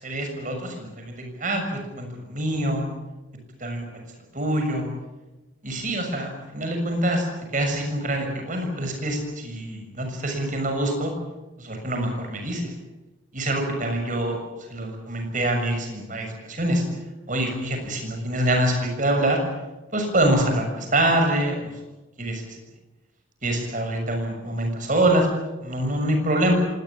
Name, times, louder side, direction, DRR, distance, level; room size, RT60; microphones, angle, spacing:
voice 1, 0.0-2.8 3.6-3.9 4.3-4.9 5.6-7.2 7.5-11.1 11.6-12.7 13.3-14.4 14.7-16.8 17.3-19.4 19.9-21.7 22.2-22.6 23.4-25.3 25.6-26.5, right 1 dB, 40° right, 3 dB, 6.6 m, -25 dB
25.5 x 19.0 x 8.8 m, 1.1 s
head